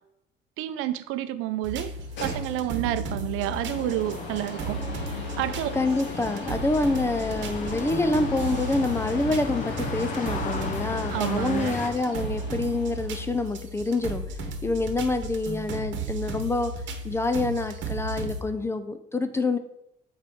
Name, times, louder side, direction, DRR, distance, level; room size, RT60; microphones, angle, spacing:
voice 1, 0.6-1.9 2.2-5.7 11.1-11.8, right 14 dB, 80° right, 12 dB, 0.5 m, -30 dB
sound 1, 1.6-18.4, right 2 dB, 60° right, 1.1 m, -35 dB
sound 2, 1.8-13.4, left 2 dB, 60° left, 2.2 m, -39 dB
sound 3, 3.5-11.9, left 4 dB, 35° left, 0.8 m, -37 dB
voice 2, 5.7-14.2 14.6-16.7 17.0-19.6, left 2 dB, 10° left, 9 dB, 0.4 m, -27 dB
8.3 x 4.4 x 3.6 m, 0.80 s
cardioid pair, 130°, 21 cm